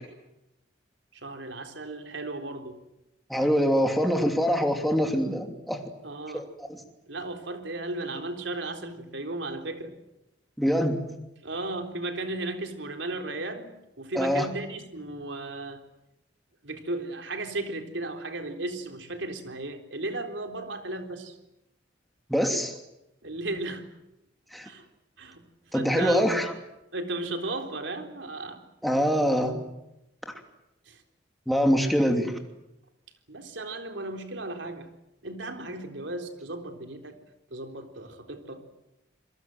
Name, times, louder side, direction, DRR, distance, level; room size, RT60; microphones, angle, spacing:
voice 1, 1.1-2.8 6.0-6.5 7.1-9.9 11.4-13.7 14.0-15.8 16.6-21.3 23.2-23.8 24.6-24.9 25.2-26.5 26.9-28.6 30.9-31.0 33.3-34.9 35.2-37.2 37.5-38.6, right 2 dB, 75° right, 5 dB, 3.7 m, -35 dB
voice 2, 3.3-5.8 6.3-6.4 6.7-6.8 10.6-11.0 14.1-14.5 22.3-22.8 24.5-24.7 25.7-26.5 28.8-29.6 31.5-32.3, equal, ahead, 3 dB, 2.8 m, -24 dB
27.5 x 23.0 x 7.8 m, 0.91 s
head